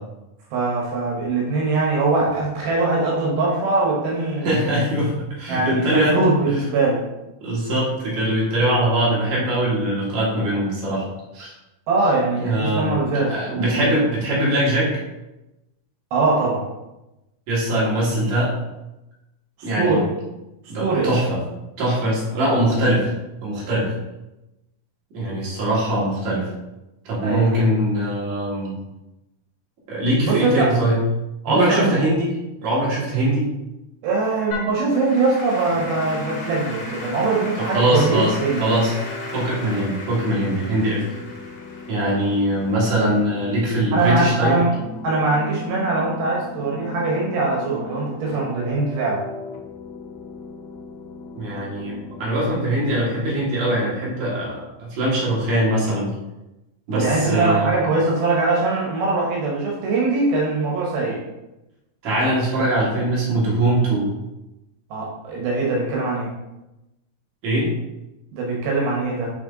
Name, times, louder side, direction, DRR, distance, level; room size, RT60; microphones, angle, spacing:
voice 1, 0.5-4.8 5.5-7.0 11.9-14.0 16.1-16.6 19.6-20.1 20.8-21.1 27.2-27.7 30.2-30.7 31.5-31.9 34.0-38.6 43.9-44.7 45.0-49.2 56.9-61.2 64.9-66.3 68.3-69.3, right 3 dB, 85° right, -2 dB, 3.0 m, -22 dB
voice 2, 4.4-6.2 6.5-6.6 7.4-11.1 11.3-11.5 12.4-14.9 17.5-18.5 19.6-20.0 20.7-21.4 21.8-23.1 23.4-23.9 25.1-26.5 27.0-28.7 29.9-31.0 31.4-32.3 32.6-33.5 37.6-39.1 39.3-41.0 41.9-44.6 51.3-56.1 56.9-57.7 62.0-64.1 67.4-67.7, right 1 dB, 55° right, -7 dB, 3.1 m, -22 dB
Applause / Keyboard (musical), 34.5-43.8, left 2 dB, 55° left, 1.6 m, -37 dB
sound 1, 35.6-53.9, left 3 dB, 80° left, 2.5 m, -37 dB
9.2 x 3.2 x 3.8 m, 0.97 s
omnidirectional pair, 4.2 m